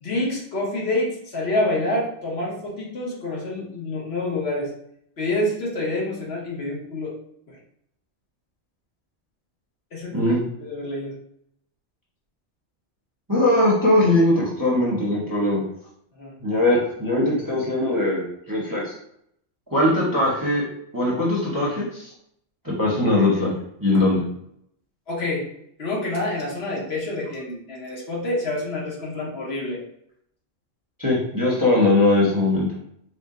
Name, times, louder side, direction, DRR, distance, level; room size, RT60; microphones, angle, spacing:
voice 1, 0.0-4.7 5.2-7.2 7.5-7.6 9.9-11.2 16.2-16.3 23.9-24.0 25.1-25.5 25.8-29.8, left 1 dB, 55° left, -3 dB, 1.2 m, -27 dB
voice 2, 10.1-10.4 13.3-15.6 16.4-18.9 19.7-20.6 20.9-22.1 22.8-23.5 23.8-24.2 31.0-32.7, left 1 dB, 20° right, -5 dB, 0.8 m, -20 dB
4.3 x 2.1 x 3.7 m, 0.71 s
omnidirectional pair, 1.3 m